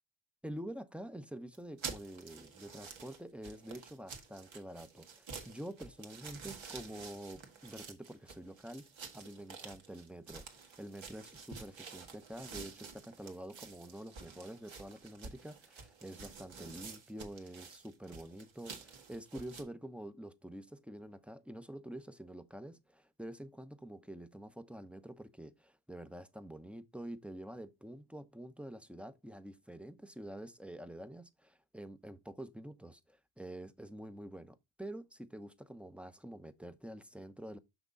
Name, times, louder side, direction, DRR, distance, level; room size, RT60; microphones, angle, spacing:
voice 1, 0.4-8.9 9.1-37.6, right 1 dB, ahead, 0.9 m, -47 dB
sound 1, 1.5-19.6, right 5 dB, 65° right, 2.0 m, -50 dB
6.1 x 6.0 x 4.0 m
cardioid pair, 65°, 50 cm